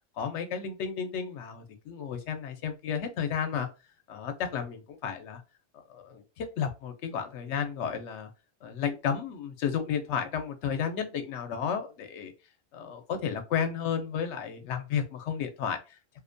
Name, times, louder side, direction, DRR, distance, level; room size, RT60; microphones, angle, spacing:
voice 1, 0.2-3.7 4.1-5.4 5.9-8.3 8.6-12.3 12.7-15.8, left 7 dB, 80° left, 6 dB, 0.9 m, -32 dB
2.6 x 2.1 x 2.5 m, 0.29 s
omnidirectional pair, 1.2 m